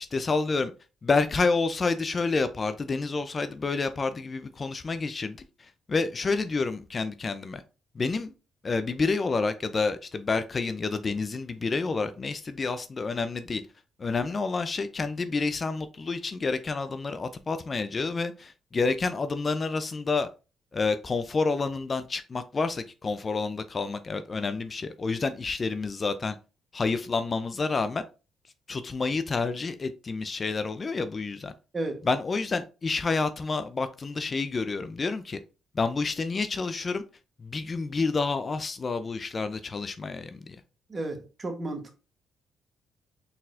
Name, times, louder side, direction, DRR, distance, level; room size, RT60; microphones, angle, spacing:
voice 1, 0.1-0.7 1.0-7.6 8.0-8.3 8.6-13.6 14.0-20.3 20.7-26.4 26.7-28.0 28.7-31.5 32.0-35.4 35.7-37.0 37.4-40.6, left 4 dB, 35° left, 0.4 m, -29 dB
voice 2, 40.9-42.0, right 2 dB, 30° right, 1.0 m, -33 dB
4.1 x 4.0 x 2.4 m
cardioid pair, 90°, 0 cm